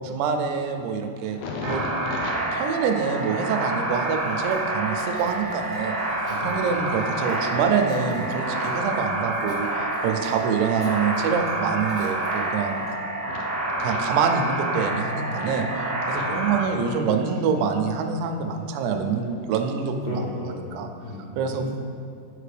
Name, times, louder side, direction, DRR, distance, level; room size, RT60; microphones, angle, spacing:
voice 1, 0.0-1.4 1.6-1.8 2.5-6.0 6.4-12.8 13.8-20.2 20.8-20.9 21.4-21.7, right 6 dB, 85° right, 5 dB, 2.8 m, -26 dB
sound 1, 1.2-8.9 9.3-11.9 12.2-12.9 13.2-15.7 16.0-17.6 17.9-18.6 19.2-19.4, left 3 dB, 85° left, 2.0 m, -41 dB
sound 2, 1.6-16.6, right 2 dB, 70° right, 1.3 m, -28 dB
Telephone, 3.9-13.0, right 1 dB, 50° right, 0.9 m, -44 dB
voice 2, 6.4-6.8 7.1-7.2 10.4-10.6 14.8-15.4 16.2-16.6 20.0-21.7, left 1 dB, 70° left, -8 dB, 2.2 m, -35 dB
10.5 x 5.0 x 3.3 m, 2.6 s
omnidirectional pair, 4.9 m